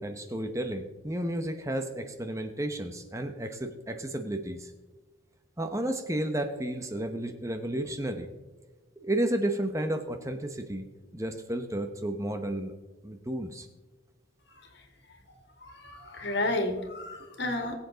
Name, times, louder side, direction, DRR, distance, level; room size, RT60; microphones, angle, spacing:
voice 1, 0.0-4.7 5.6-8.3 9.0-10.9 11.1-12.7 13.0-13.7, right 1 dB, 15° right, 7 dB, 0.8 m, -32 dB
voice 2, 15.3-17.7, left 2 dB, 60° left, 4 dB, 2.1 m, -32 dB
22.0 x 8.0 x 3.9 m, 1.2 s
head